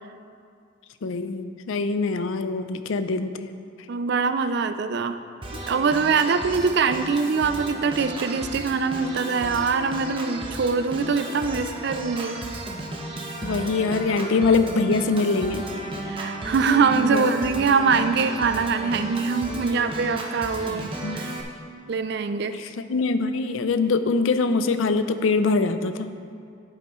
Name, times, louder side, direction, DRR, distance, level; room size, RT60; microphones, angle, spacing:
voice 1, 1.0-3.4 13.4-15.6 17.1-17.3 21.0-21.2 22.9-26.1, left 3 dB, 75° left, 10 dB, 0.4 m, -23 dB
voice 2, 3.9-5.2 5.7-12.5 16.0-20.9 21.1-21.4 21.9-22.6, right 5 dB, 55° right, 10 dB, 0.4 m, -23 dB
Organ, 5.4-21.4, right 1 dB, 25° right, 0.8 m, -34 dB
10.5 x 8.5 x 3.1 m, 2.4 s
head